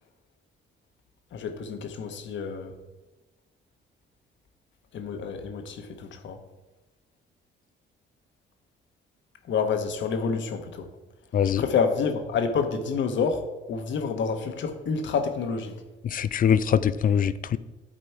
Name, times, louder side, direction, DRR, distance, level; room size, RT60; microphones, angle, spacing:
voice 1, 1.3-2.7 4.9-6.4 9.5-10.9 11.6-15.7, left 5 dB, 70° left, 6 dB, 1.2 m, -28 dB
voice 2, 16.1-17.6, left 8 dB, 45° left, 15 dB, 0.4 m, -23 dB
11.5 x 4.1 x 4.6 m, 1.1 s
cardioid pair, 90°, 20 cm